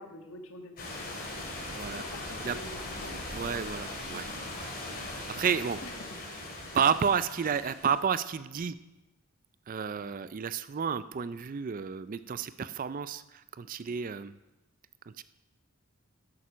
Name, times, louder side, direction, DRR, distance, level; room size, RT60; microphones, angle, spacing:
voice 1, 0.0-1.5 1.8-3.4 5.8-6.2, left 1 dB, 65° left, 5 dB, 1.5 m, -47 dB
sound 1, 0.8-8.0, left 2 dB, 45° left, 2.7 m, -40 dB
voice 2, 1.7-2.0 2.4-2.6 3.3-4.7 5.1-5.8 6.7-8.8 9.7-14.4 15.1-15.2, right 7 dB, 40° right, 14 dB, 0.4 m, -31 dB
11.5 x 8.8 x 6.1 m, 1.0 s
head